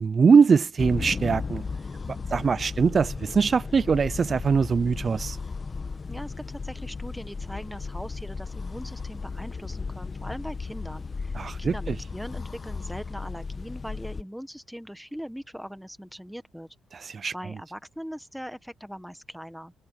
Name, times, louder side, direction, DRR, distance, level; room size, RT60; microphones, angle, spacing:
voice 1, 0.0-1.6 2.1-5.4 11.3-12.0 16.9-17.3, right 5 dB, 40° right, 0.3 m, -22 dB
sound 1, 0.8-14.2, left 4 dB, 30° left, 1.2 m, -35 dB
voice 2, 6.1-16.7 17.3-19.7, equal, ahead, 1.4 m, -40 dB
cardioid pair, 90°, 0 cm